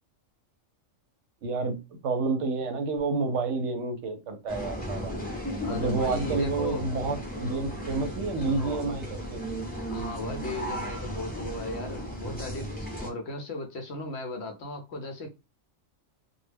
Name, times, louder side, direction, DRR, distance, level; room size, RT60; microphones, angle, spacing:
voice 1, 1.4-1.8 2.0-5.1 5.7-9.4, right 3 dB, 70° right, 0.8 m, -29 dB
sound 1, 4.5-13.1, equal, 10° left, 0.5 m, -35 dB
voice 2, 5.6-6.8 8.4-8.8 9.9-15.3, left 2 dB, 65° left, 0.8 m, -36 dB
2.3 x 2.0 x 3.2 m
omnidirectional pair, 1.3 m